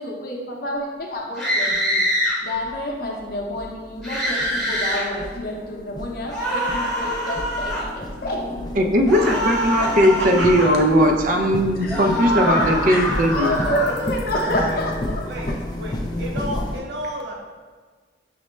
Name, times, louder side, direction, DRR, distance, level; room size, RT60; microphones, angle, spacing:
voice 1, 0.0-2.1 2.4-8.6 9.7-9.8 11.7-15.6, left 1 dB, 55° left, -1 dB, 0.6 m, -29 dB
sound 1, 1.4-2.4 4.0-5.0 6.3-7.9 9.0-10.7 11.9-14.0, equal, ahead, 0.8 m, -24 dB
sound 2, 1.7-1.8 2.5-16.8, left 1 dB, 25° left, 0.3 m, -31 dB
voice 2, 8.8-13.5, equal, 50° right, 3 dB, 0.4 m, -18 dB
voice 3, 9.6-10.6 14.6-14.8 15.2-15.5 15.8-17.3, right 1 dB, 80° right, 0 dB, 0.7 m, -31 dB
5.8 x 2.1 x 3.1 m, 1.5 s
head